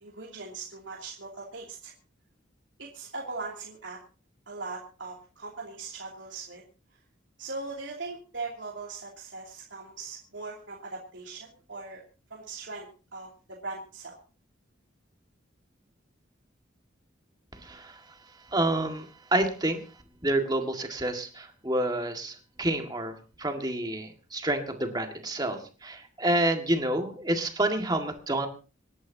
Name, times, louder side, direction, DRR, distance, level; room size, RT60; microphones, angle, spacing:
voice 1, 0.0-1.9 2.9-4.0 4.5-6.6 7.4-12.0 12.3-14.2, right 3 dB, 75° right, -3 dB, 2.8 m, -40 dB
voice 2, 17.6-18.0 18.5-19.8 20.2-28.5, right 1 dB, 20° right, 4 dB, 1.9 m, -28 dB
27.0 x 11.0 x 2.8 m, 0.34 s
head